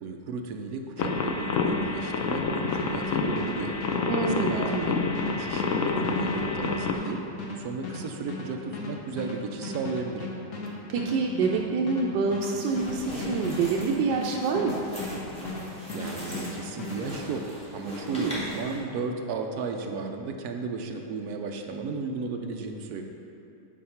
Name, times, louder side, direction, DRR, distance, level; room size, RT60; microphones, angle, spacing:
voice 1, 0.0-3.8 4.2-4.8 5.3-7.2 7.6-10.3 15.9-17.5 17.7-23.0, right 4 dB, 70° right, 3 dB, 1.1 m, -34 dB
sound 1, 1.0-6.9, left 4 dB, 75° left, 0.7 m, -28 dB
sound 2, 2.7-15.6 15.9-17.0, left 2 dB, 55° left, 1.5 m, -36 dB
voice 2, 4.1-5.0 10.9-14.9 18.2-18.4, right 4 dB, 85° right, -1 dB, 1.3 m, -27 dB
sound 3, 12.4-18.8, equal, 5° left, 1.6 m, -39 dB
8.7 x 4.6 x 5.7 m, 2.7 s
omnidirectional pair, 2.0 m